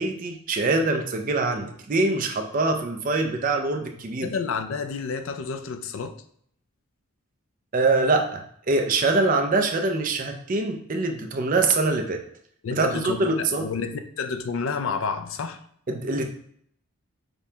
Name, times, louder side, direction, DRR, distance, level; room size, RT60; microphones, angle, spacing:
voice 1, 0.0-4.3 7.7-12.2 12.7-13.7 15.9-16.3, right 3 dB, 40° right, 4 dB, 0.4 m, -24 dB
voice 2, 4.2-6.2 12.6-15.6, left 5 dB, 65° left, 9 dB, 0.4 m, -30 dB
5.2 x 2.2 x 2.8 m, 0.65 s
head